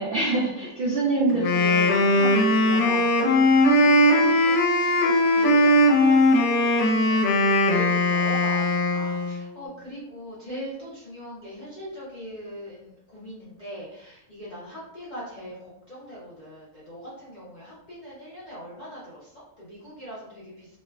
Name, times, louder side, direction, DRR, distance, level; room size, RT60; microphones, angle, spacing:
voice 1, 0.0-1.9 2.2-2.3 2.6-3.1, right 2 dB, 65° right, -6 dB, 0.5 m, -26 dB
Wind instrument woodwind instrument, 1.3-9.5, left 1 dB, 85° left, 1.1 m, -19 dB
voice 2, 3.6-7.2 7.6-8.7 8.9-15.5 15.9-19.0 19.7-20.7, equal, 50° left, -8 dB, 0.6 m, -40 dB
3.1 x 2.1 x 2.2 m, 0.80 s
omnidirectional pair, 1.5 m